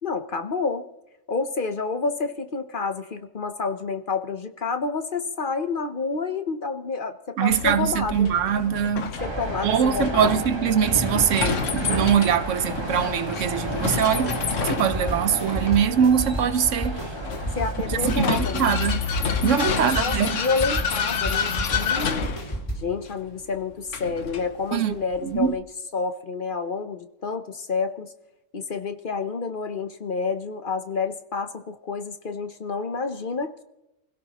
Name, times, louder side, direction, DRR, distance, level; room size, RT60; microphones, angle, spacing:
voice 1, 0.0-0.8 1.3-8.3 9.2-10.4 17.6-18.8 19.7-22.3 22.8-25.6 25.9-28.1 28.5-33.6, left 4 dB, 45° left, 1.0 m, -29 dB
voice 2, 7.4-9.1 9.6-14.4 14.6-17.1 18.0-19.1 19.4-20.4 24.7-24.9 25.2-25.5, right 8 dB, 75° right, 1.1 m, -22 dB
Vehicle, 7.5-25.6, left 6 dB, 75° left, 1.4 m, -30 dB
sound 1, 9.2-18.2, right 1 dB, 20° right, 1.7 m, -32 dB
sound 2, 14.8-22.8, right 1 dB, 25° left, 3.8 m, -32 dB
28.5 x 16.5 x 3.0 m
omnidirectional pair, 1.3 m